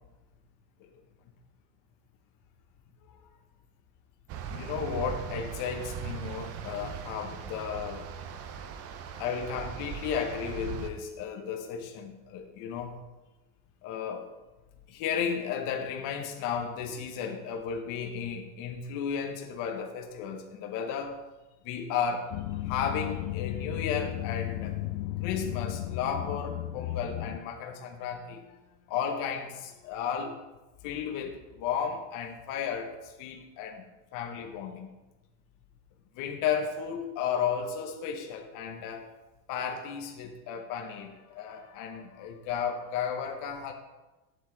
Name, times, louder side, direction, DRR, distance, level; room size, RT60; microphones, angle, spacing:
sound 1, 4.3-10.9, right 7 dB, 30° right, 0.5 m, -39 dB
voice 1, 4.5-8.1 9.2-13.0 13.8-14.3 14.9-21.2 21.6-24.8 25.2-28.6 28.9-30.4 30.8-33.9 34.1-34.9 36.1-39.1 39.5-43.7, left 7 dB, 40° left, 3 dB, 0.8 m, -34 dB
sound 2, 22.3-27.4, left 14 dB, 60° left, 0.5 m, -34 dB
7.7 x 6.8 x 3.8 m, 1.1 s
supercardioid pair, 140°, 49 cm